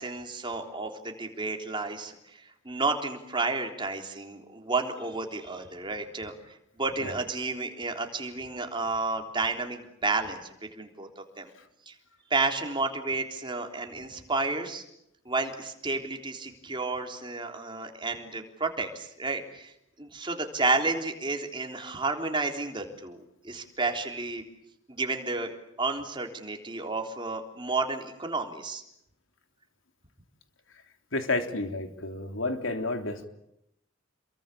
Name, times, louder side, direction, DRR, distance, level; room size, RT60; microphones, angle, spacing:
voice 1, 0.0-10.4 10.8-11.5 11.9-12.0 12.3-14.8 15.3-19.7 20.0-23.2 23.4-24.4 24.9-28.8, right 3 dB, 25° right, 4 dB, 3.7 m, -31 dB
voice 2, 31.1-33.3, left 2 dB, 80° left, 6 dB, 3.3 m, -30 dB
28.5 x 23.0 x 8.6 m, 0.81 s
head